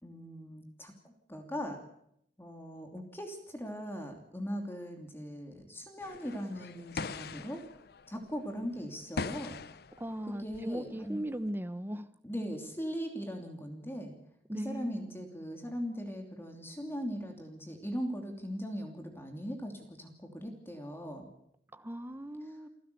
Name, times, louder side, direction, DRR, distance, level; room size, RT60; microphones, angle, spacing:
voice 1, 0.0-1.8 2.4-7.6 8.1-9.6 10.3-11.2 12.2-14.1 14.6-21.3, equal, 15° left, 2.9 m, -39 dB
sound 1, 6.0-11.5, left 4 dB, 60° left, 0.7 m, -42 dB
voice 2, 10.0-12.1 14.5-15.1 21.7-22.7, right 1 dB, 15° right, 1.1 m, -38 dB
29.5 x 12.5 x 6.9 m
head